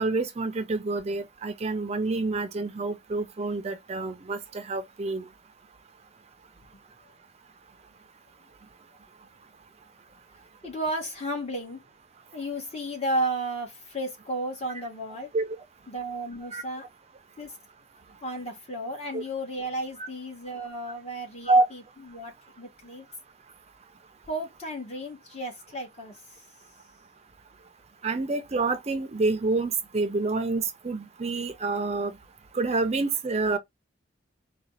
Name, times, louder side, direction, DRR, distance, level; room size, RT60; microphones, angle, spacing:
voice 1, 0.0-5.3 15.3-15.6 16.5-16.6 19.1-19.2 20.0-20.1 20.9-21.0 21.5-21.7 28.0-32.1 32.5-33.6, right 3 dB, 35° right, 0.5 m, -27 dB
voice 2, 10.6-11.8 12.3-15.3 15.9-16.8 17.4-17.5 18.2-21.8 22.1-23.1 24.3-26.1, right 1 dB, 35° left, 1.7 m, -33 dB
4.0 x 2.3 x 3.9 m
head